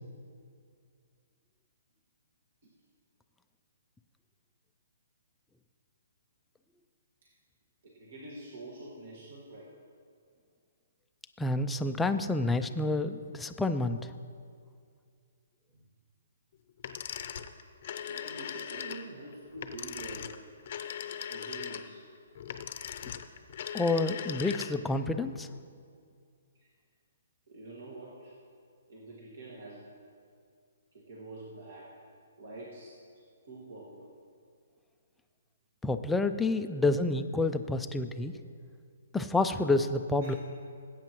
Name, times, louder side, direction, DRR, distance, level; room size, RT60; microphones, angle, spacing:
voice 1, 7.8-9.8 15.7-15.9 18.0-20.4 21.3-22.0 26.5-26.7 27.5-28.4 28.9-29.9 30.9-32.0 32.4-34.2 40.2-40.4, right 2 dB, 55° right, -4 dB, 1.8 m, -46 dB
voice 2, 11.4-14.1 23.7-25.5 35.8-38.3 39.1-40.3, left 2 dB, 5° left, 7 dB, 0.4 m, -29 dB
sound 1, 16.8-25.0, left 9 dB, 45° left, 0.6 m, -39 dB
20.0 x 8.5 x 3.1 m, 2.2 s
hypercardioid pair, 160°, 0 cm